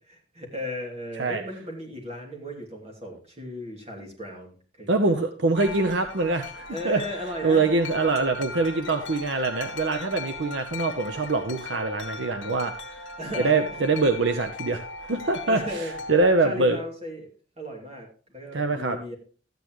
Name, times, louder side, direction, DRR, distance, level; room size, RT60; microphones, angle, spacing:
voice 1, 0.1-5.1 6.7-7.7 13.2-13.6 15.4-15.9 16.4-17.3 17.6-19.1, left 1 dB, 35° right, 0 dB, 2.9 m, -36 dB
voice 2, 4.9-7.0 7.4-13.0 13.4-16.8 18.5-19.0, right 3 dB, 70° right, 6 dB, 0.8 m, -24 dB
Wind chime, 5.5-16.4, left 3 dB, 80° left, 1.6 m, -38 dB
13.0 x 9.3 x 3.1 m, 0.39 s
head